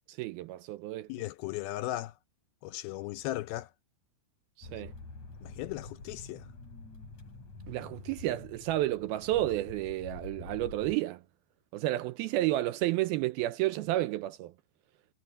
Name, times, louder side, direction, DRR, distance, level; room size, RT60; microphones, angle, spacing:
voice 1, 0.1-1.1 4.6-4.9 7.7-11.2 11.7-14.5, right 15 dB, 80° right, 2.2 m, -31 dB
voice 2, 1.1-2.1 2.6-3.7 5.4-6.5, left 16 dB, 80° left, 2.2 m, -37 dB
sound 1, 4.6-11.0, left 3 dB, 45° left, 7.7 m, -47 dB
omnidirectional pair, 4.9 m